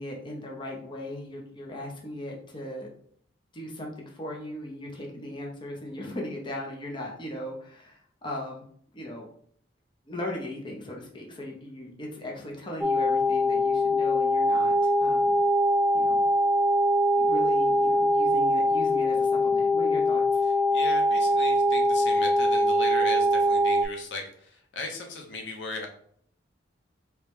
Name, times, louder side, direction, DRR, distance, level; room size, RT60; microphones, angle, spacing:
voice 1, 0.0-2.9 3.5-8.6 8.9-9.3 10.1-15.4 15.9-16.2 17.2-20.2, left 1 dB, 25° left, -1 dB, 0.7 m, -38 dB
sound 1, 12.8-23.9, equal, 10° right, 0.3 m, -23 dB
voice 2, 20.7-25.9, left 3 dB, 70° left, 2 dB, 0.7 m, -37 dB
3.0 x 2.8 x 3.5 m, 0.62 s
head